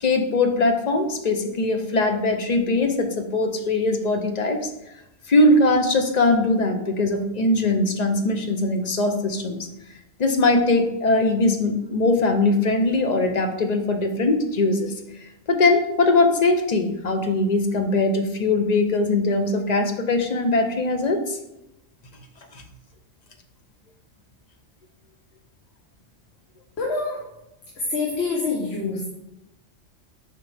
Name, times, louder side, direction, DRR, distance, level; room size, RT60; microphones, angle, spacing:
voice 1, 0.0-4.7 5.3-9.6 10.2-14.9 15.5-21.4 22.5-22.6, left 2 dB, 45° left, 5 dB, 0.7 m, -21 dB
voice 2, 26.8-27.2 27.8-29.0, left 3 dB, 60° left, -1 dB, 1.2 m, -26 dB
6.7 x 5.1 x 3.3 m, 0.88 s
omnidirectional pair, 1.2 m